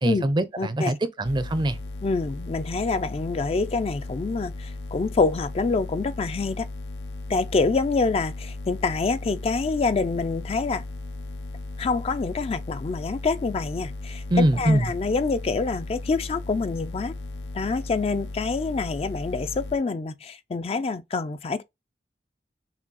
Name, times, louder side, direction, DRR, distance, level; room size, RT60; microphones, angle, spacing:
voice 1, 0.0-1.8 14.3-14.9, right 1 dB, 25° right, 0.5 m, -23 dB
voice 2, 0.6-0.9 2.0-6.7 7.3-10.8 11.8-14.2 14.6-17.1 17.5-21.6, left 4 dB, 35° left, 0.3 m, -26 dB
sound 1, 1.2-19.8, left 2 dB, 80° left, 0.8 m, -36 dB
5.9 x 2.3 x 4.0 m
head